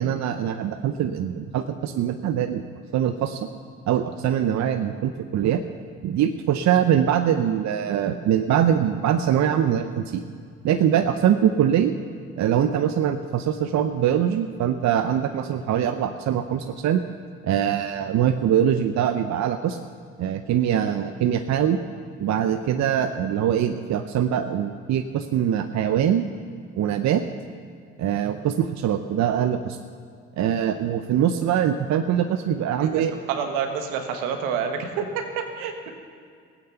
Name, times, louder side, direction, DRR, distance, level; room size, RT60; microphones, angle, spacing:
voice 1, 0.0-2.7 2.9-3.5 3.9-5.6 6.0-10.2 10.6-12.0 12.4-17.0 17.4-19.8 20.2-21.8 22.2-26.3 26.8-27.2 28.0-29.8 30.4-33.1, right 9 dB, 60° right, 9 dB, 0.7 m, -23 dB
voice 2, 32.8-35.9, right 6 dB, 80° right, 5 dB, 1.4 m, -28 dB
16.0 x 8.8 x 6.9 m, 2.2 s
hypercardioid pair, 50°, 32 cm